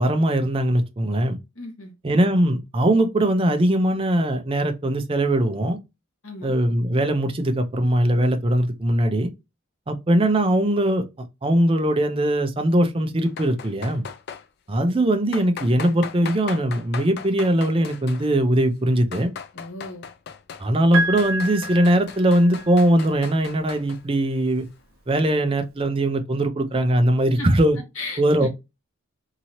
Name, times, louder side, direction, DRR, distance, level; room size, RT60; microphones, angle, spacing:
voice 1, 0.0-1.4 2.0-5.8 6.4-9.3 9.9-11.0 11.4-14.0 14.7-19.3 20.6-24.7 25.1-27.8 28.2-28.5, right 1 dB, 25° right, 0.5 m, -20 dB
voice 2, 1.5-1.9 6.2-6.6 19.5-20.1 27.4-27.5 27.9-28.5, left 2 dB, 80° left, 1.4 m, -35 dB
sound 1, 13.3-14.5 15.3-18.4 18.9-20.7 20.9-24.0, left 7 dB, 50° left, 0.3 m, -38 dB
Piano, 20.9-22.9 24.2-24.3, right 2 dB, 75° right, 0.5 m, -28 dB
2.8 x 2.7 x 2.8 m
head